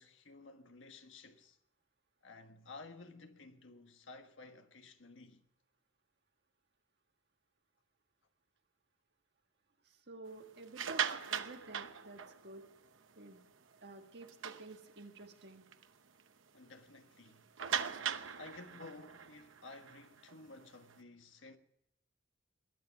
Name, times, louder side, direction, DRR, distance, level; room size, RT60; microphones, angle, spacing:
voice 1, 0.0-1.6 2.2-5.4 16.5-17.4 18.4-21.6, left 3 dB, 75° left, 1.4 m, -54 dB
voice 2, 9.9-12.6 13.2-13.4 13.8-15.7, right 2 dB, 60° right, 1.8 m, -51 dB
sound 1, 10.6-12.7 13.2-13.4 13.7-13.8 14.2-15.2 15.7-15.8 16.2-16.3 17.6-20.9, right 7 dB, 85° right, 0.9 m, -40 dB
21.5 x 9.6 x 5.9 m
head